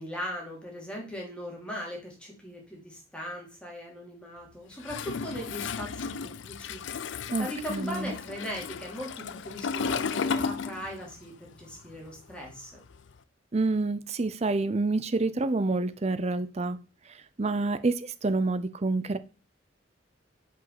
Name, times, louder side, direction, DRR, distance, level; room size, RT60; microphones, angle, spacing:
voice 1, 0.0-6.8 7.1-12.8, equal, 5° left, 2.5 m, -39 dB
Toilet flush, 4.8-11.3 11.5-13.1, left 5 dB, 65° left, 0.4 m, -34 dB
voice 2, 7.3-8.1 13.5-16.8 17.4-19.2, right 3 dB, 35° right, 0.5 m, -28 dB
5.4 x 5.3 x 5.8 m
head